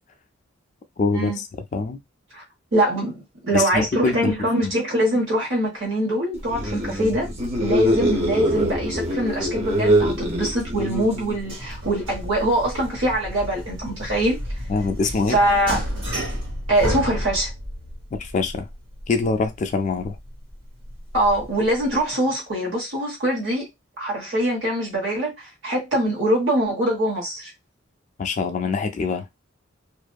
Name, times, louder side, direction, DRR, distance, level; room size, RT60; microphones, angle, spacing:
voice 1, 1.0-1.4 1.7-2.0 3.5-4.3 4.6-4.7 14.7-15.4 18.1-18.7 19.1-20.2 28.2-29.3, left 4 dB, 35° left, 0.3 m, -24 dB
voice 2, 2.7-7.3 7.6-14.4 15.3-15.8 16.7-17.5 21.1-23.7 24.0-25.3 25.6-27.5, right 1 dB, 65° right, 1.2 m, -23 dB
sound 1, 6.4-11.5, equal, 30° right, 0.6 m, -23 dB
sound 2, 9.9-22.1, equal, 85° right, 1.5 m, -33 dB
2.5 x 2.5 x 2.2 m
head